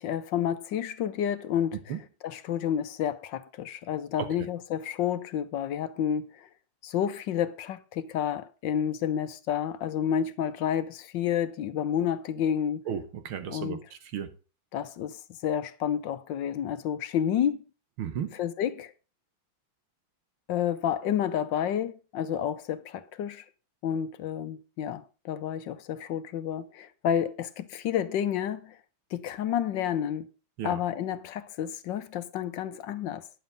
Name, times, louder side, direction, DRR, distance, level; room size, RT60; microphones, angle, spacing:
voice 1, 0.0-1.9 2.2-6.5 6.8-12.8 13.5-13.8 14.7-17.6 18.4-18.9 20.5-23.4 23.8-28.8 29.1-30.3 30.6-33.3, left 9 dB, 70° left, 1.3 m, -30 dB
voice 2, 12.9-14.3 18.0-18.4 30.6-30.8, right 8 dB, 85° right, 2.0 m, -34 dB
10.5 x 7.4 x 5.1 m
omnidirectional pair, 2.3 m